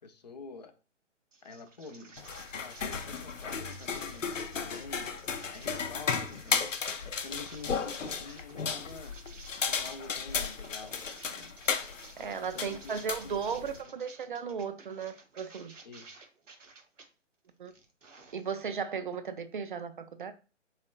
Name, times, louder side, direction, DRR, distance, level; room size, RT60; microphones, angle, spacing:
voice 1, 0.0-0.7 1.4-5.1 5.5-6.7 7.0-9.2 9.6-11.6 12.2-13.6 13.8-13.9 15.8-16.3, left 4 dB, 35° left, 0.4 m, -48 dB
sound 1, 1.3-17.1 17.5-18.8, right 4 dB, 80° right, 0.8 m, -54 dB
sound 2, 2.2-13.8, left 6 dB, 85° left, 0.6 m, -35 dB
voice 2, 12.2-15.7 17.6-17.7 18.3-20.3, right 6 dB, 45° right, 0.4 m, -36 dB
3.5 x 3.3 x 2.3 m
figure-of-eight pair, 135°, 37 cm